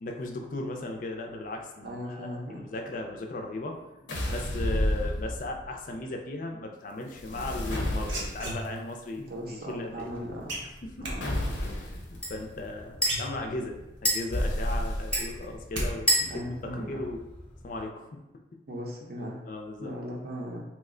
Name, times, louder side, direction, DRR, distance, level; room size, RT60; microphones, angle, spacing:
voice 1, 0.0-10.1 10.8-11.1 11.8-13.8 14.0-17.2 17.6-18.0 19.5-19.9, left 2 dB, 45° left, 2 dB, 0.4 m, -37 dB
voice 2, 1.8-2.6 9.2-10.5 11.0-11.3 12.1-12.2 16.2-17.1 18.7-19.4 19.8-20.6, equal, 55° right, -1 dB, 0.6 m, -38 dB
sound 1, 4.1-5.7 7.1-8.7 11.2-12.0 14.3-15.4, left 1 dB, 85° left, 0.6 m, -30 dB
sound 2, 7.7-9.0 10.5-11.2 12.6-12.7 13.0-13.8 14.2-14.3 14.6-15.9 16.2-16.6, right 1 dB, 85° right, 0.8 m, -35 dB
sound 3, 10.0-17.8, equal, 5° left, 0.6 m, -34 dB
3.0 x 2.1 x 3.6 m, 0.95 s
head